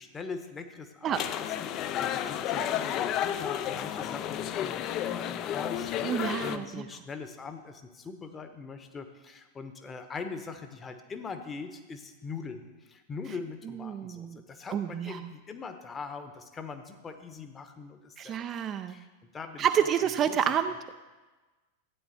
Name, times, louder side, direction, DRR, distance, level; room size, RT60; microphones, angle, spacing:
voice 1, 0.0-18.4 18.9-19.7 20.2-20.4, left 5 dB, 20° left, 8 dB, 1.1 m, -42 dB
sound 1, 1.1-6.6, left 10 dB, 35° left, 0.5 m, -32 dB
voice 2, 6.0-6.8 13.9-14.4 14.7-15.3 18.2-19.0 19.6-20.9, right 9 dB, 30° right, 9 dB, 0.5 m, -29 dB
13.5 x 8.9 x 4.2 m, 1.2 s
figure-of-eight pair, 90°, 0 cm